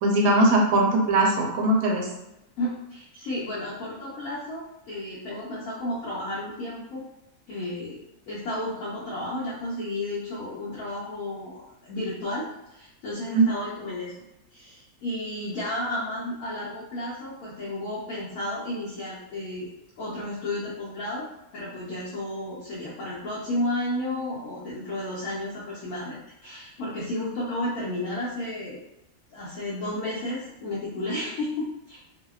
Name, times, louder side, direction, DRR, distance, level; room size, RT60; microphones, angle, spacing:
voice 1, 0.0-2.1 13.3-13.5, right 2 dB, 90° right, 0 dB, 1.1 m, -20 dB
voice 2, 2.6-7.0 7.5-8.0 8.3-14.1 14.5-19.7 20.0-28.8 29.3-32.0, left 1 dB, 75° left, -8 dB, 1.0 m, -32 dB
2.7 x 2.1 x 2.3 m, 0.87 s
omnidirectional pair, 1.5 m